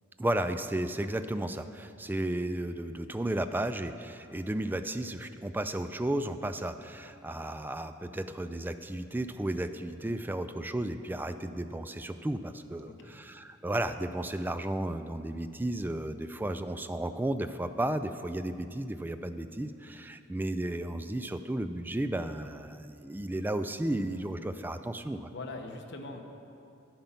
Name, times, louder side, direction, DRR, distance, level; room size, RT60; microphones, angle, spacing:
voice 1, 0.2-25.3, right 1 dB, 10° right, 10 dB, 0.3 m, -33 dB
voice 2, 25.3-26.2, left 2 dB, 60° left, 2 dB, 1.0 m, -41 dB
10.0 x 9.0 x 5.8 m, 2.6 s
head